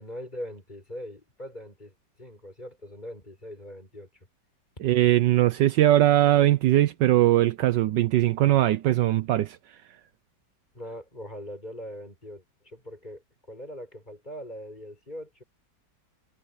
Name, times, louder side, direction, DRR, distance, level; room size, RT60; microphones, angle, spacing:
voice 1, 0.0-4.1 4.8-4.9 10.7-15.4, equal, 20° left, 7.0 m, -41 dB
voice 2, 4.8-9.6, right 14 dB, 70° right, 1.2 m, -20 dB
omnidirectional pair, 2.1 m